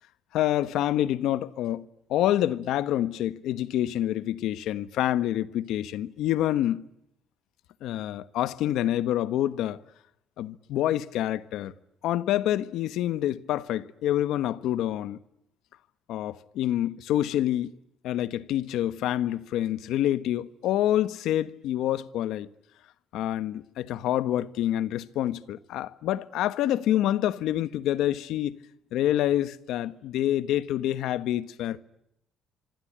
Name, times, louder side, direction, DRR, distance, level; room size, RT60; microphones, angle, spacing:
voice 1, 0.3-6.8 7.8-9.8 10.4-11.7 12.0-15.2 16.1-17.7 18.0-22.5 23.1-28.6 28.9-31.8, left 12 dB, 70° left, 1.3 m, -27 dB
26.0 x 25.0 x 8.8 m
cardioid pair, 175°, 0 cm